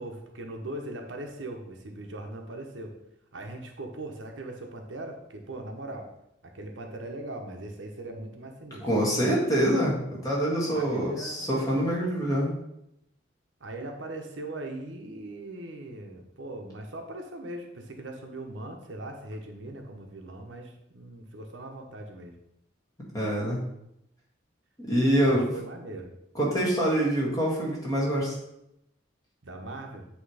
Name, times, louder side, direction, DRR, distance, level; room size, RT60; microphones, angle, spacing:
voice 1, 0.0-2.9 3.3-6.1 6.4-8.9 10.7-11.7 13.6-22.4 25.2-26.1 29.4-30.1, right 2 dB, 80° right, 3 dB, 1.0 m, -40 dB
voice 2, 8.8-12.5 23.1-23.6 24.9-25.5 26.3-28.3, right 1 dB, 20° left, -4 dB, 1.8 m, -25 dB
8.0 x 3.1 x 4.9 m, 0.81 s
head